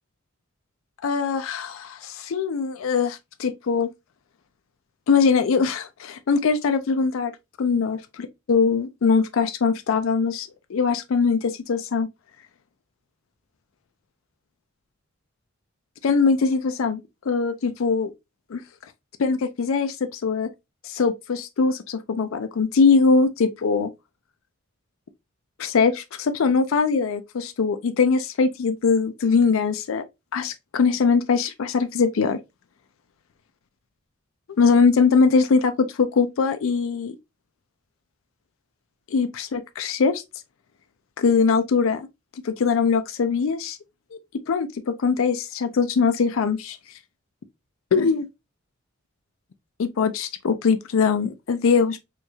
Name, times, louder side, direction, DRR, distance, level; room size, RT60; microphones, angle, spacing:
voice 1, 1.0-3.9 5.1-7.3 7.6-8.0 8.5-12.1 16.0-17.0 17.3-18.1 18.5-18.6 19.2-20.5 20.8-23.9 25.6-30.0 30.3-32.4 34.6-37.2 39.1-40.2 41.2-42.1 42.4-43.8 44.5-46.8 47.9-48.3 49.8-52.0, left 5 dB, 75° left, 0.4 m, -21 dB
4.4 x 2.3 x 2.7 m
head